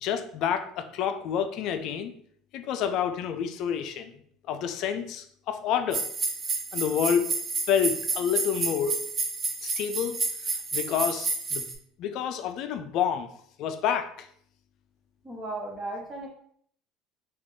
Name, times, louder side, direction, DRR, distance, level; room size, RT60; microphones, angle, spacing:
voice 1, 0.0-2.1 2.5-4.1 4.5-6.1 6.7-7.3 7.7-8.9 9.6-10.2 10.7-11.6 12.0-13.3 13.6-14.3, left 8 dB, 60° left, 9 dB, 0.4 m, -28 dB
sound 1, 5.9-11.7, right 4 dB, 35° right, 0.7 m, -30 dB
voice 2, 15.2-16.3, right 2 dB, 15° right, -2 dB, 1.3 m, -35 dB
3.6 x 2.4 x 3.6 m, 0.63 s
supercardioid pair, 100°, 0 cm